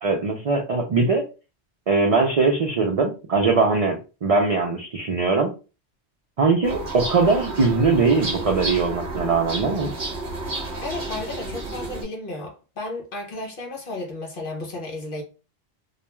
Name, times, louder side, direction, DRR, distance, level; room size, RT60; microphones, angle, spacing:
voice 1, 0.0-1.2 1.9-5.5 6.4-9.9, right 4 dB, 60° right, 0.3 m, -21 dB
sound 1, 6.6-12.0, right 2 dB, 45° right, 0.8 m, -31 dB
voice 2, 10.8-15.2, left 2 dB, 55° left, 0.7 m, -33 dB
2.3 x 2.2 x 2.9 m
omnidirectional pair, 1.2 m